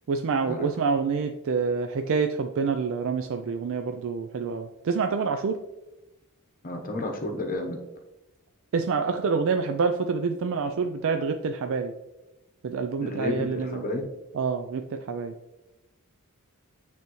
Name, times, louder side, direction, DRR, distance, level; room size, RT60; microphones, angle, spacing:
voice 1, 0.1-5.6 8.7-11.9 12.6-13.8 14.3-15.3, right 5 dB, 65° right, 6 dB, 0.4 m, -27 dB
voice 2, 6.6-7.8 13.0-14.1, left 2 dB, 40° left, 3 dB, 1.0 m, -31 dB
9.1 x 3.5 x 3.1 m, 0.98 s
head